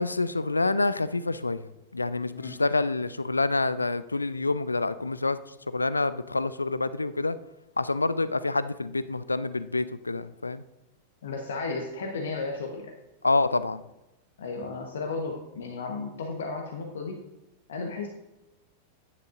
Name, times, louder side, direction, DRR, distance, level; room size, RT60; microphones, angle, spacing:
voice 1, 0.0-1.6 1.9-5.4 5.7-7.4 7.8-10.6 13.2-13.8, left 3 dB, 80° left, 15 dB, 0.3 m, -27 dB
voice 2, 11.2-12.9 14.4-17.2 17.7-18.1, left 3 dB, 65° left, 2 dB, 1.0 m, -34 dB
10.5 x 9.7 x 2.5 m, 0.95 s
figure-of-eight pair, 90°, 0 cm